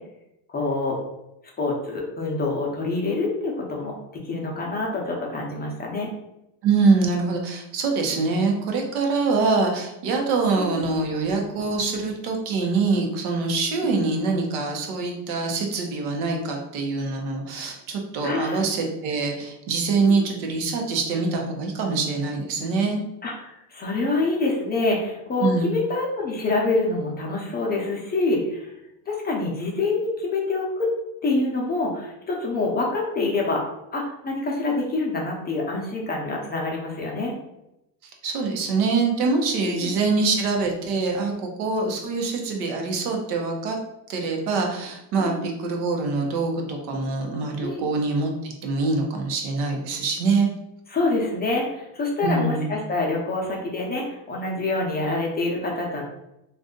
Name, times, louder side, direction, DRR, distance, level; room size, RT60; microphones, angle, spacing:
voice 1, 0.5-1.0 1.6-3.9 4.2-6.1 10.6-10.8 13.8-14.0 18.2-18.6 20.0-20.2 23.2-28.7 29.1-30.9 31.2-33.6 33.9-37.3 39.6-40.0 45.2-45.4 47.6-47.9 50.9-56.0, left 3 dB, 20° left, -2 dB, 0.5 m, -26 dB
voice 2, 6.6-23.0 25.4-25.8 38.2-43.8 44.1-50.5 52.2-52.7, right 4 dB, 90° right, 2 dB, 0.9 m, -24 dB
2.6 x 2.4 x 3.6 m, 0.87 s
cardioid pair, 145°, 46 cm